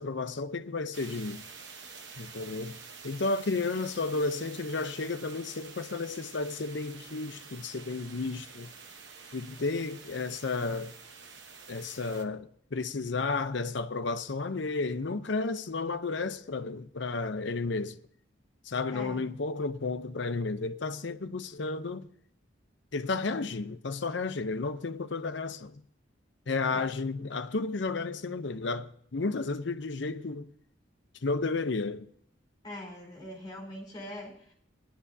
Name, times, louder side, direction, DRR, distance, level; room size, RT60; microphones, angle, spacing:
voice 1, 0.0-1.4 2.2-2.8 3.0-8.7 9.3-10.9 11.7-18.0 18.6-22.1 22.9-25.8 26.5-30.5 31.2-32.1, left 3 dB, 65° left, 0.7 m, -32 dB
sound 1, 0.9-12.2, right 5 dB, 65° right, 1.1 m, -48 dB
voice 2, 18.9-19.2 26.7-26.9 32.6-34.5, left 1 dB, 20° left, 4.3 m, -42 dB
20.0 x 11.0 x 2.7 m
head